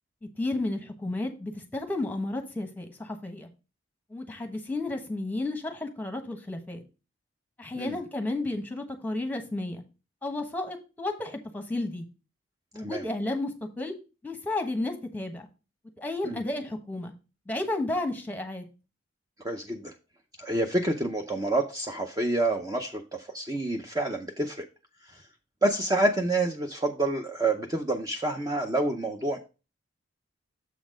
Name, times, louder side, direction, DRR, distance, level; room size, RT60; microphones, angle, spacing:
voice 1, 0.4-3.5 4.1-6.8 7.6-9.8 10.2-12.0 12.7-14.0 14.2-15.5 16.0-17.1 17.5-18.6, left 2 dB, 10° left, 6 dB, 1.1 m, -32 dB
voice 2, 19.4-19.9 20.4-24.7 25.1-25.2 25.6-29.4, right 2 dB, 20° right, 4 dB, 0.6 m, -28 dB
7.2 x 4.1 x 5.0 m, 0.30 s
head